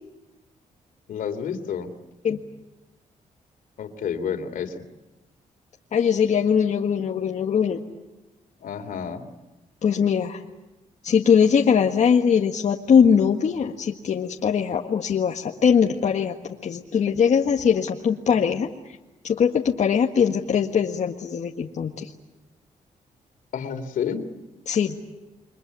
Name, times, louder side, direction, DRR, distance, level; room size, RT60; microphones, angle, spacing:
voice 1, 1.1-1.9 3.8-4.8 8.6-9.2 23.5-24.2, left 7 dB, 75° left, 8 dB, 3.1 m, -30 dB
voice 2, 5.9-7.8 9.8-10.4 11.0-19.0 19.2-22.1 24.7-25.0, left 7 dB, 55° left, 1 dB, 1.7 m, -21 dB
29.5 x 23.5 x 8.3 m, 1.0 s
cardioid pair, 110°, 14 cm